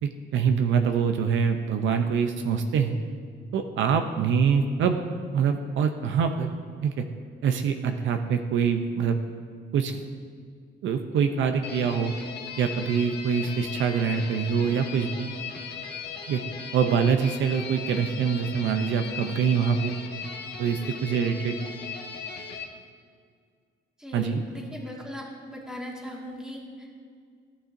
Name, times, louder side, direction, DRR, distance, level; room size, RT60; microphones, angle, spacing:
voice 1, 0.0-3.0 3.5-5.0 5.3-6.5 6.8-7.0 7.4-9.2 9.7-10.0 10.8-12.1 12.6-15.3 16.3-16.4 16.7-20.0 20.6-21.6 24.1-24.4, right 6 dB, 75° right, 6 dB, 0.6 m, -24 dB
sound 1, 11.6-22.6, left 6 dB, 55° left, 1.1 m, -38 dB
voice 2, 24.0-26.9, equal, 5° right, -3 dB, 1.9 m, -38 dB
14.5 x 6.3 x 2.6 m, 2.1 s
cardioid pair, 90°, 20 cm